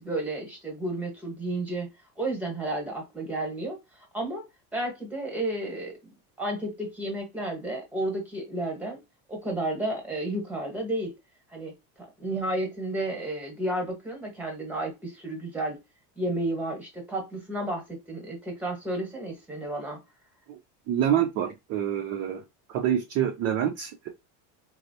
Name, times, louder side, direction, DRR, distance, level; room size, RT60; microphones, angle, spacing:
voice 1, 0.0-1.9 2.2-3.8 4.1-4.4 4.7-6.0 6.4-9.0 9.3-11.1 11.5-11.7 12.2-15.8 16.2-20.0, right 1 dB, 5° right, 0.9 m, -32 dB
voice 2, 20.9-22.4 22.7-24.1, right 10 dB, 35° right, 0.4 m, -26 dB
4.1 x 2.0 x 2.6 m
cardioid pair, 165°, 44 cm